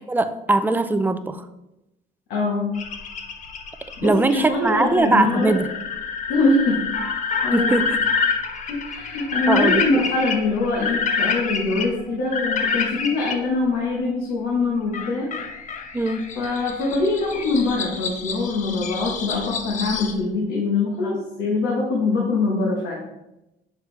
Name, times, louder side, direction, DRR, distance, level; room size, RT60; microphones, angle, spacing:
voice 1, 0.1-1.5 4.0-5.7 7.5-8.0 9.5-9.8 15.9-16.3, right 2 dB, 10° right, 10 dB, 0.4 m, -21 dB
voice 2, 2.3-2.6 4.0-5.6 6.3-6.8 7.4-7.8 8.7-15.3 16.3-23.0, left 3 dB, 90° left, -3 dB, 1.3 m, -23 dB
sound 1, 2.7-13.3 14.9-20.1, left 5 dB, 50° left, 0.7 m, -27 dB
6.7 x 4.7 x 3.3 m, 0.93 s
cardioid pair, 110°, 17 cm